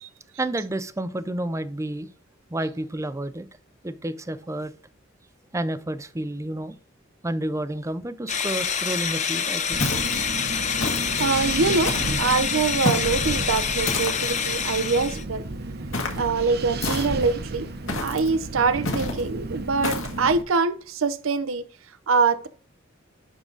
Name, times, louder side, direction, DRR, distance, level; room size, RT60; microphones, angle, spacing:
voice 1, 0.4-2.1 2.5-3.5 3.8-4.7 5.5-6.7 7.2-9.8, right 1 dB, 15° right, 0.5 m, -30 dB
sound 1, 8.3-15.2, left 7 dB, 35° left, 0.7 m, -27 dB
Wind, 9.7-20.4, right 2 dB, 50° right, 0.9 m, -33 dB
sound 2, 9.8-10.3 10.8-11.3 11.8-12.3 12.8-13.2 13.9-14.4 15.9-16.3 16.8-17.3 17.9-18.3 18.8-19.2 19.8-20.2, left 2 dB, 65° left, 1.8 m, -29 dB
voice 2, 11.2-11.9 12.2-15.4 16.2-17.7 18.0-21.6 22.1-22.5, right 4 dB, 75° right, 0.6 m, -24 dB
11.0 x 3.8 x 3.9 m
head